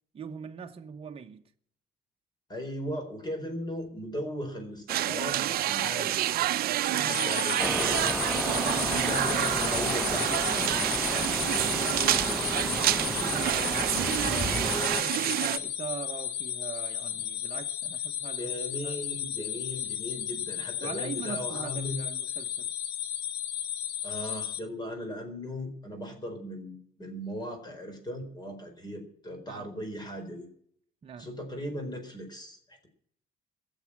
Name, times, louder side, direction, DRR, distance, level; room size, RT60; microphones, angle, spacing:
voice 1, 0.1-1.4 6.9-7.3 8.3-9.0 11.1-13.9 14.2-18.5 18.8-19.0 20.8-22.7 29.5-29.7 31.0-31.3, right 7 dB, 35° right, 1.1 m, -42 dB
voice 2, 2.5-6.5 6.9-8.1 8.7-10.7 18.4-22.0 24.0-30.5 31.2-32.9, equal, 25° left, 4.3 m, -38 dB
sound 1, 4.9-15.6, right 13 dB, 65° right, 0.7 m, -28 dB
sound 2, 7.1-24.6, left 10 dB, 85° left, 1.2 m, -34 dB
sound 3, 7.6-15.0, right 1 dB, ahead, 0.8 m, -33 dB
16.0 x 7.5 x 9.9 m
cardioid pair, 110°, 17 cm